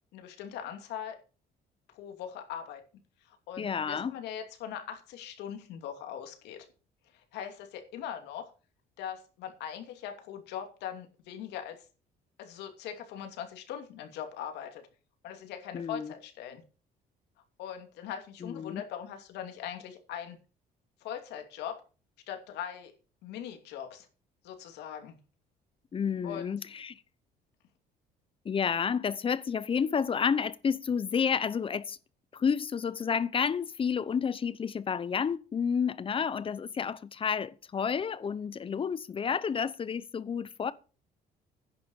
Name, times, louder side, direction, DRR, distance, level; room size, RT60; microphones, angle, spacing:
voice 1, 0.1-1.2 1.9-2.8 3.2-6.6 7.1-8.5 9.0-11.8 12.4-14.9 15.2-16.6 17.6-20.4 21.0-21.8 22.3-22.9 23.2-24.1 24.4-25.1 26.2-26.6, left 9 dB, 85° left, 2.7 m, -41 dB
voice 2, 3.6-4.1 15.7-16.1 18.4-18.8 25.9-27.0 28.4-32.0 32.3-40.7, left 6 dB, 30° left, 0.8 m, -30 dB
10.5 x 6.8 x 7.1 m
cardioid pair, 110°, 17 cm